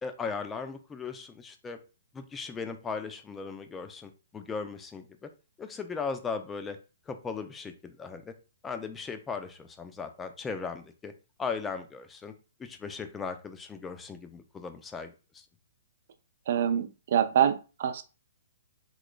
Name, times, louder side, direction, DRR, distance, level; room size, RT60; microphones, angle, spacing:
voice 1, 0.0-1.8 2.1-5.3 5.6-6.8 7.1-8.3 8.6-11.1 11.4-12.3 12.6-15.5, left 5 dB, 10° left, 8 dB, 0.4 m, -37 dB
voice 2, 16.5-18.0, right 9 dB, 55° right, 9 dB, 0.4 m, -25 dB
3.8 x 2.9 x 2.2 m, 0.32 s
hypercardioid pair, 150°, 0 cm